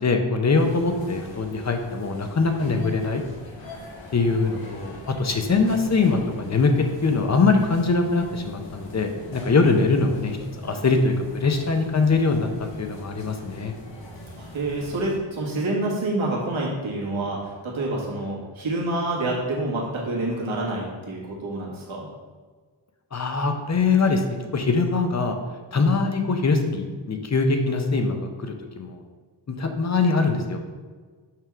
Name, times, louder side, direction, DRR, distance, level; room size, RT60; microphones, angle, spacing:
voice 1, 0.0-3.2 4.1-6.7 7.0-12.5 12.8-13.7 23.1-24.2 24.5-25.3 25.7-29.0 29.5-30.6, left 4 dB, 35° left, 5 dB, 0.7 m, -22 dB
sound 1, 0.5-15.2, left 1 dB, 65° left, 1.5 m, -42 dB
voice 2, 14.4-22.1, right 2 dB, 80° right, -3 dB, 1.8 m, -27 dB
5.8 x 3.6 x 5.9 m, 1.5 s
wide cardioid pair, 140°, 47 cm